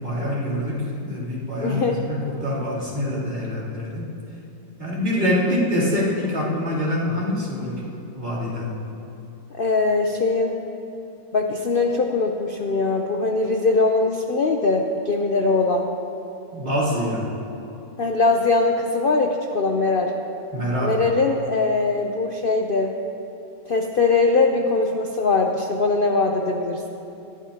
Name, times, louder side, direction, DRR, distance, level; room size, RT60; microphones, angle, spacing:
voice 1, 0.0-4.1 4.8-7.8 8.1-8.8 16.5-17.3 20.5-21.0, left 1 dB, 35° right, -9 dB, 3.5 m, -25 dB
voice 2, 1.6-2.0 9.5-10.6 11.3-15.9 18.0-20.1 20.8-22.9 23.7-26.9, left 3 dB, 80° left, 2 dB, 0.4 m, -21 dB
20.5 x 12.0 x 2.9 m, 2.8 s
omnidirectional pair, 1.8 m